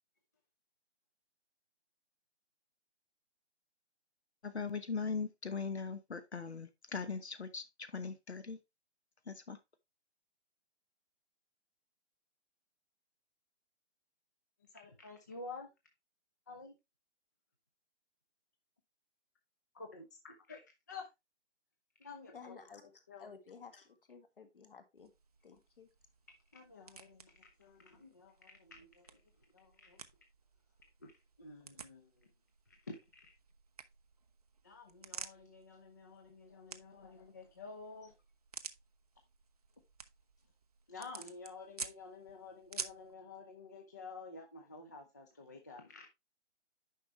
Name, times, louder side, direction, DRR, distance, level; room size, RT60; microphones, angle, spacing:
voice 1, 4.4-8.6 9.3-9.6, left 5 dB, 65° left, 1.1 m, -40 dB
voice 2, 14.7-15.7 16.5-16.8 19.7-20.6 20.9-21.1 22.0-22.6 23.1-23.4 26.5-29.2 29.5-30.0 31.0-31.1 31.4-32.1 32.9-33.3 34.6-38.1 40.9-46.1, left 4 dB, 15° left, 0.5 m, -50 dB
voice 3, 22.3-25.1 25.4-25.9, left 5 dB, 50° left, 1.8 m, -54 dB
sound 1, 25.0-43.1, right 5 dB, 35° right, 0.6 m, -52 dB
9.8 x 5.7 x 3.1 m
figure-of-eight pair, 140°, 35 cm